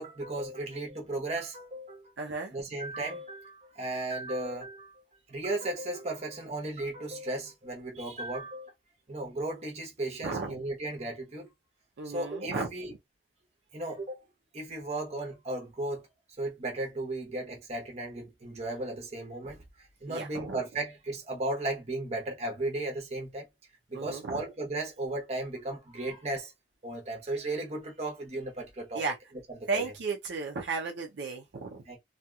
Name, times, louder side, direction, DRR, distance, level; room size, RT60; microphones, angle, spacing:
voice 1, 0.0-2.1 2.5-5.0 5.3-8.7 9.1-11.5 12.0-12.9 13.7-14.2 14.5-16.0 16.4-19.6 20.0-23.5 23.9-26.5 26.8-29.0 29.5-29.9 31.9-32.0, right 2 dB, 35° right, 0.9 m, -35 dB
voice 2, 2.2-2.5 10.2-10.5 12.0-12.7 20.1-20.6 23.9-24.4 28.9-29.2 29.7-31.8, right 4 dB, 70° right, 0.5 m, -34 dB
2.8 x 2.7 x 2.3 m
head